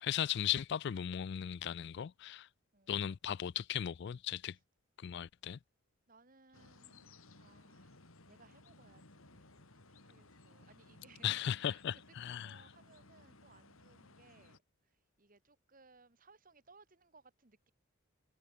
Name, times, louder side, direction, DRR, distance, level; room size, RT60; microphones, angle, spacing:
voice 1, 0.0-2.5 2.9-4.6 5.0-5.6 11.2-12.6, left 9 dB, 55° left, 0.3 m, -37 dB
voice 2, 2.7-3.2 4.5-4.6 6.1-17.7, right 3 dB, 40° right, 2.2 m, -65 dB
sound 1, 6.5-14.6, left 2 dB, 80° left, 3.6 m, -60 dB
head